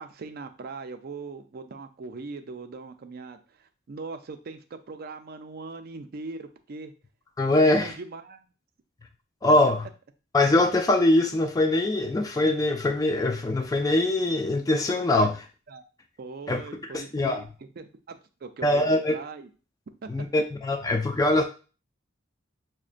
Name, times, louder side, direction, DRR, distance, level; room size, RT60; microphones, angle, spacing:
voice 1, 0.0-6.9 7.5-8.5 15.2-15.3 15.7-15.8 16.2-17.5 17.8-19.5 20.0-20.1, right 3 dB, 50° right, 8 dB, 0.4 m, -40 dB
voice 2, 7.4-7.9 9.4-9.8 10.3-15.5 16.5-16.6 16.9-17.4 18.6-19.2 20.1-21.4, left 2 dB, 20° left, 4 dB, 0.3 m, -22 dB
6.0 x 2.1 x 2.4 m, 0.34 s
head